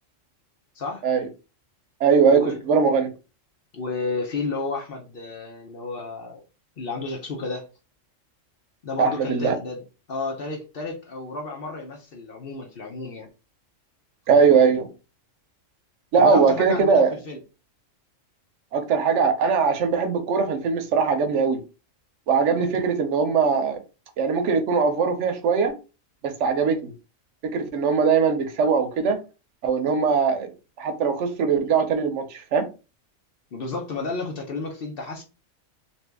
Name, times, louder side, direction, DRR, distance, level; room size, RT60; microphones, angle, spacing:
voice 1, 2.0-3.1 9.0-9.5 14.3-14.9 16.1-17.1 18.7-21.6 22.3-23.8 24.2-25.7 26.2-26.9 27.5-29.2 29.6-30.5 30.8-32.7, right 5 dB, 70° right, 0.9 m, -20 dB
voice 2, 3.7-6.4 6.8-7.7 8.8-13.3 16.1-17.4 22.6-22.7 33.5-35.2, left 3 dB, 55° left, 0.8 m, -32 dB
2.8 x 2.6 x 3.3 m
omnidirectional pair, 1.3 m